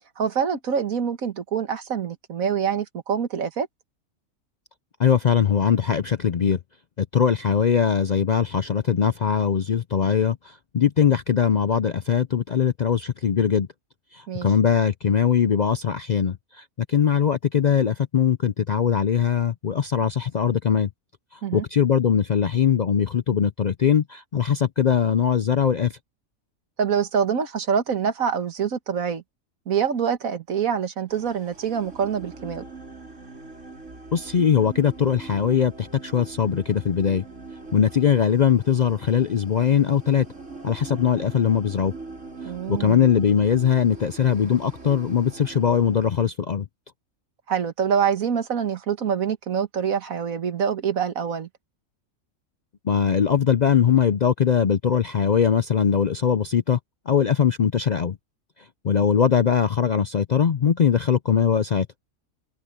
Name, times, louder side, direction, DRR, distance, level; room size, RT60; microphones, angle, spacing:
voice 1, 0.2-3.7 14.3-14.5 21.4-21.6 26.8-29.2 29.7-32.6 42.5-43.0 47.5-51.5, right 7 dB, 75° right, 1.9 m, -25 dB
voice 2, 5.0-6.6 7.0-13.7 14.1-16.4 16.9-20.9 21.5-25.9 34.1-37.2 37.7-40.3 40.6-41.9 42.7-46.7 52.9-56.8 57.1-58.2 58.8-61.9, left 7 dB, 65° left, 0.4 m, -21 dB
sound 1, 31.1-46.3, right 3 dB, 60° right, 4.7 m, -42 dB
omnidirectional pair, 1.5 m